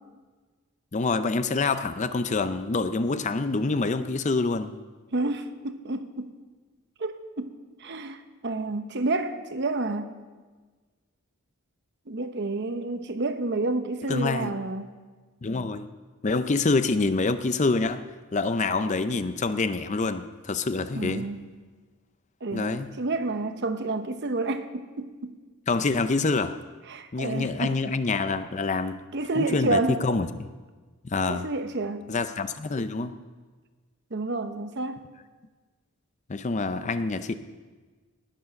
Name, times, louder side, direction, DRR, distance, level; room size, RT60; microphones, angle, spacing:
voice 1, 0.9-4.7 14.1-14.5 15.4-15.9 16.2-18.0 18.3-21.3 22.5-22.9 25.7-26.6 27.1-29.0 29.4-30.5 31.0-31.4 32.1-33.1 36.3-37.3, left 3 dB, 30° left, 0.5 m, -26 dB
voice 2, 5.1-6.4 7.0-7.5 7.8-10.1 12.1-14.9 20.9-21.5 22.4-25.3 26.9-27.8 29.1-30.0 31.3-32.1 34.1-35.0, right 2 dB, 50° right, 0.9 m, -29 dB
19.0 x 7.2 x 6.4 m
head